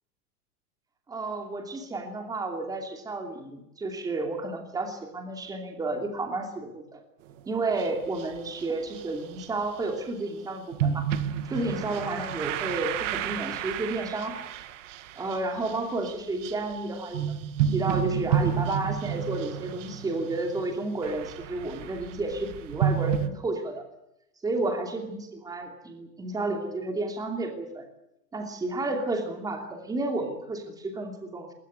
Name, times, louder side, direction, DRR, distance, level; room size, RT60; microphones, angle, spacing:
voice 1, 1.1-7.0 7.5-11.1 11.4-14.4 15.2-17.4 17.6-23.8 24.4-27.9 28.3-31.5, right 2 dB, 10° right, 4 dB, 2.7 m, -31 dB
sound 1, 7.3-7.4 7.7-10.1 10.7-23.3, right 9 dB, 50° right, 1.8 m, -31 dB
22.0 x 19.0 x 8.2 m, 0.84 s
supercardioid pair, 175°, 48 cm